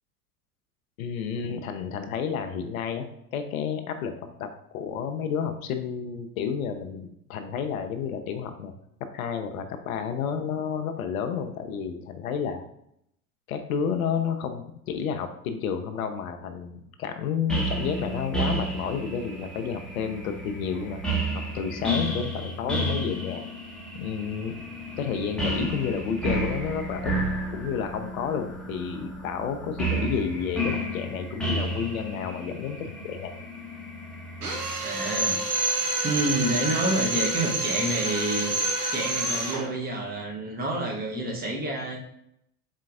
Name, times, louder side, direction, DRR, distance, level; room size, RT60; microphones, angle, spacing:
voice 1, 1.0-3.1 3.3-8.7 9.1-12.6 13.5-21.0 21.3-23.5 23.9-24.6 25.0-27.1 27.5-33.4, left 7 dB, 70° left, 7 dB, 0.6 m, -31 dB
sound 1, 17.5-34.8, right 1 dB, ahead, 0.9 m, -32 dB
Drill, 34.4-39.7, right 2 dB, 85° right, 0.7 m, -28 dB
voice 2, 34.8-35.4 36.0-38.5 38.9-42.0, right 1 dB, 20° right, -1 dB, 0.9 m, -28 dB
4.1 x 3.7 x 2.5 m, 0.76 s
figure-of-eight pair, 70°, 44 cm